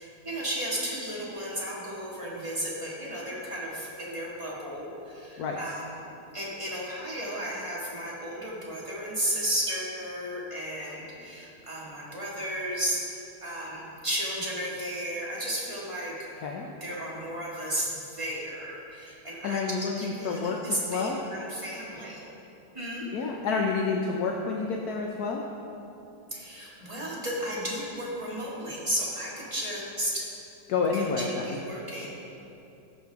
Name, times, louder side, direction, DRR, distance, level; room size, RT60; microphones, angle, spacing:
voice 1, 0.0-6.0 6.3-16.1 16.8-19.6 20.0-22.2 22.7-23.1 26.3-30.2 30.9-32.1, equal, 15° right, -6 dB, 1.9 m, -34 dB
voice 2, 19.4-20.6 20.9-21.2 23.1-25.4 30.7-31.6, left 4 dB, 65° left, 0 dB, 1.0 m, -29 dB
15.5 x 6.2 x 3.5 m, 2.8 s
omnidirectional pair, 2.2 m